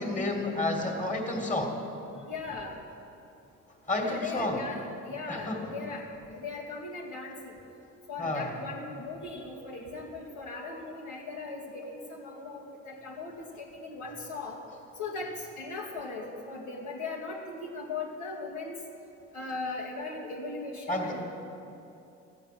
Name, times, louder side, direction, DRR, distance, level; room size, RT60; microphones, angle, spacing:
voice 1, 0.0-1.8 3.9-4.6 5.3-5.7 8.2-8.5 20.9-21.2, left 2 dB, 25° left, 1 dB, 2.4 m, -30 dB
voice 2, 2.3-2.7 4.0-4.8 5.1-6.0 6.3-7.5 8.1-14.6 15.0-18.8 19.3-21.2, left 3 dB, 85° left, -6 dB, 2.4 m, -38 dB
13.5 x 8.0 x 7.6 m, 2.8 s
cardioid pair, 90°, 30 cm